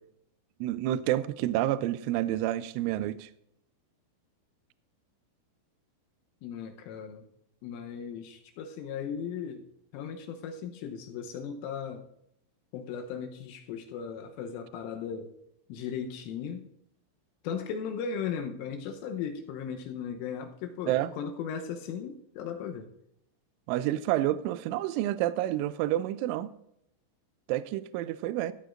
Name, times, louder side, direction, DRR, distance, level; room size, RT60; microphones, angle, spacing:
voice 1, 0.6-3.3 20.9-21.1 23.7-26.5 27.5-28.5, right 14 dB, 85° right, 2.8 m, -29 dB
voice 2, 6.4-7.2 7.6-9.7 9.9-12.0 12.7-15.3 15.7-16.7 17.4-22.9, left 7 dB, 80° left, 3.3 m, -37 dB
14.5 x 12.0 x 2.5 m
omnidirectional pair, 5.9 m